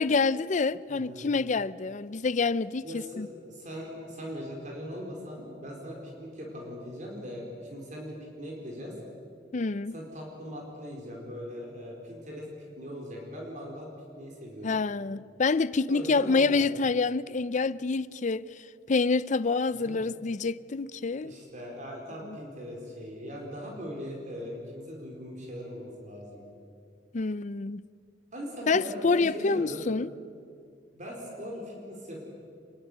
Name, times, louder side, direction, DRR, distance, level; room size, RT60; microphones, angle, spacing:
voice 1, 0.0-3.3 9.5-9.9 14.6-18.5 18.9-21.3 22.3-22.4 27.1-27.8 28.7-30.1, left 4 dB, 45° left, 0.5 m, -27 dB
voice 2, 0.9-1.3 2.8-8.9 9.9-12.5 12.8-13.9 14.1-14.8 15.9-16.7 19.7-20.0 21.2-26.4 28.3-29.9 30.9-32.2, equal, 45° right, 4.6 m, -40 dB
26.0 x 21.0 x 8.1 m
head